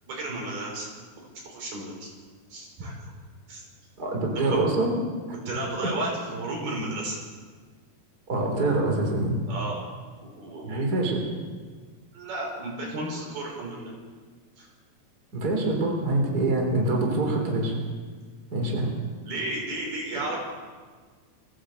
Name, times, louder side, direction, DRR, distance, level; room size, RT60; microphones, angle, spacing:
voice 1, 0.1-0.9 1.4-2.1 2.5-3.0 3.5-3.6 4.4-4.6 5.5-7.2 9.5-9.8 10.2-10.8 12.1-13.9 14.6-14.7 19.2-20.4, right 2 dB, 80° right, -2 dB, 7.6 m, -33 dB
voice 2, 4.0-4.9 5.8-5.9 8.3-9.4 10.6-11.2 15.3-17.7 18.5-18.9, right 2 dB, 25° right, 1 dB, 4.0 m, -25 dB
23.5 x 15.5 x 8.1 m, 1.5 s
omnidirectional pair, 4.4 m